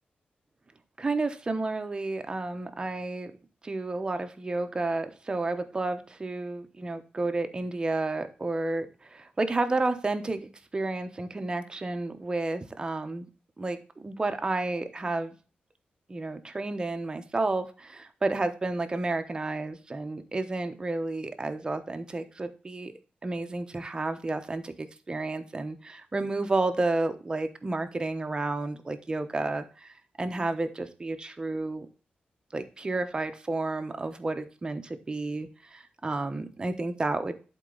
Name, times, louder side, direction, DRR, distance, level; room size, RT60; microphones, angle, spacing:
voice 1, 1.0-3.3 3.6-13.3 13.6-13.8 14.0-15.4 16.1-22.9 23.2-31.9 32.5-37.5, right 2 dB, 25° right, 8 dB, 1.0 m, -31 dB
11.0 x 4.6 x 3.9 m, 0.36 s
wide cardioid pair, 120°, 3 cm